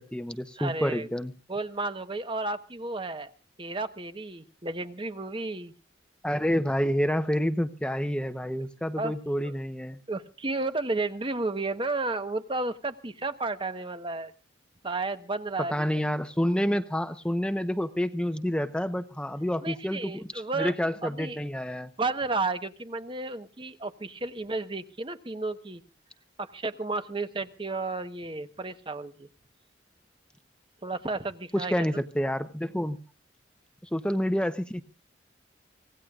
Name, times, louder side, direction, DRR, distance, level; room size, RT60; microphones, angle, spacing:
voice 1, 0.0-1.3 6.2-10.0 15.7-21.9 31.5-33.0 33.9-34.8, equal, 5° left, 8 dB, 0.9 m, -28 dB
voice 2, 0.6-1.1 1.5-3.3 3.6-5.7 9.0-9.1 10.1-14.3 14.8-15.7 19.6-20.7 21.0-21.4 22.0-25.8 26.4-29.3 30.8-31.8, right 3 dB, 25° right, 9 dB, 1.2 m, -32 dB
25.5 x 18.0 x 2.5 m, 0.37 s
head